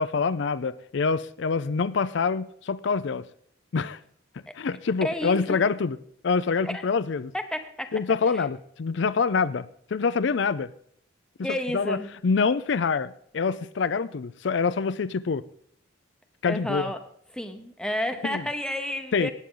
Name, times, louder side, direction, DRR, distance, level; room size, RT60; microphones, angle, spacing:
voice 1, 0.0-3.3 3.7-4.0 4.6-6.0 6.2-7.3 7.9-10.7 11.7-12.0 12.2-15.5 16.4-16.9 18.2-18.4 19.1-19.3, left 5 dB, 65° left, 0.4 m, -26 dB
voice 2, 5.0-5.6 6.6-6.8 7.3-7.9 8.3-8.5 11.4-12.1 16.5-17.0 17.3-19.3, left 1 dB, 5° left, 0.8 m, -31 dB
19.0 x 8.5 x 3.8 m
head